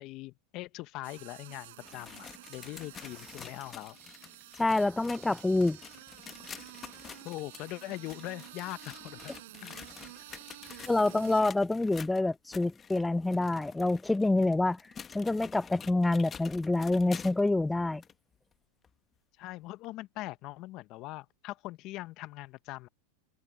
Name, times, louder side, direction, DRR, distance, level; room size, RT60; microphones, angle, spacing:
voice 1, 0.0-4.0 7.2-9.3 9.6-9.9 10.7-10.9 19.4-22.9, left 18 dB, 45° left, 0.7 m, -42 dB
sound 1, 1.0-11.4, right 17 dB, 70° right, 7.0 m, -50 dB
sound 2, 1.7-17.5 18.0-18.1 18.8-18.9 19.8-19.9, left 7 dB, 25° left, 1.0 m, -49 dB
voice 2, 4.6-5.8 10.9-14.8 15.1-18.0, left 2 dB, 5° left, 0.5 m, -27 dB
open air
hypercardioid pair, 120°, 0 cm